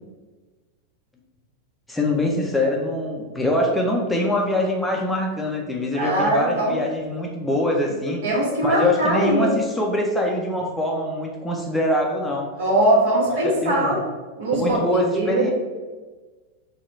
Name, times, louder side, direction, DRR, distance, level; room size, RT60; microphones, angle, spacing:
voice 1, 1.9-8.2 8.6-12.5 13.3-14.0 14.5-15.5, left 1 dB, 5° left, -1 dB, 0.6 m, -24 dB
voice 2, 5.9-6.7 8.2-9.5 12.6-14.0 14.4-15.5, right 1 dB, 55° right, -2 dB, 1.2 m, -21 dB
3.7 x 2.3 x 4.5 m, 1.3 s
figure-of-eight pair, 90°, 0 cm